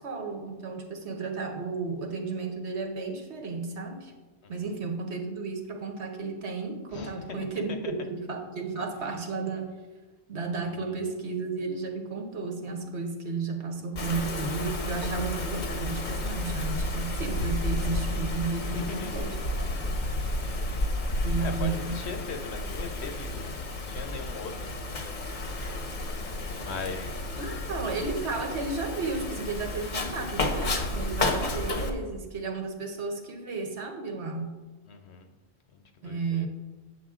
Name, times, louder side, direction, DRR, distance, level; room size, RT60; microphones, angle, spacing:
voice 1, 0.0-4.1 4.5-9.7 10.3-19.3 19.7-19.9 21.2-22.0 27.4-34.5 36.0-36.5, right 4 dB, 65° right, 4 dB, 1.3 m, -33 dB
voice 2, 6.9-7.5 7.8-7.9 9.0-9.1 10.6-11.1 18.6-19.3 20.4-20.9 21.4-25.2 26.5-27.3 34.9-35.3 35.7-36.5, left 4 dB, 65° left, 5 dB, 1.0 m, -40 dB
Wind, 14.0-31.9, left 2 dB, 45° left, 0.9 m, -31 dB
8.3 x 7.2 x 3.7 m, 1.2 s
omnidirectional pair, 1.3 m